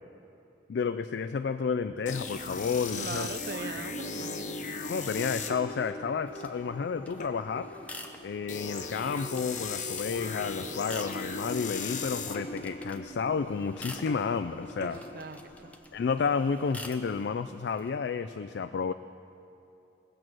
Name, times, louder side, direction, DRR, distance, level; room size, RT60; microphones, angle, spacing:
voice 1, 0.7-3.3 4.9-7.7 8.2-15.0 15.9-18.9, left 5 dB, 75° left, 10 dB, 0.4 m, -31 dB
sound 1, 2.1-15.8, left 3 dB, 45° left, 0.8 m, -38 dB
voice 2, 3.0-4.7 14.8-15.8, right 4 dB, 55° right, 11 dB, 0.5 m, -41 dB
sound 2, 6.3-17.9, left 2 dB, 10° left, 0.7 m, -49 dB
19.0 x 7.7 x 6.1 m, 2.7 s
head